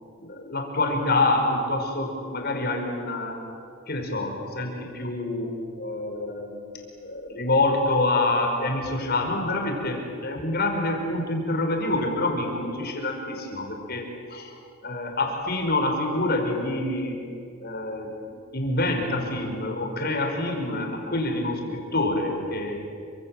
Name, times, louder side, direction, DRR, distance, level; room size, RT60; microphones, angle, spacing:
voice 1, 0.2-3.4 3.9-6.7 7.0-14.5 14.8-17.2 17.6-22.8, left 2 dB, 45° left, 2 dB, 5.1 m, -27 dB
29.5 x 25.5 x 7.7 m, 2.4 s
head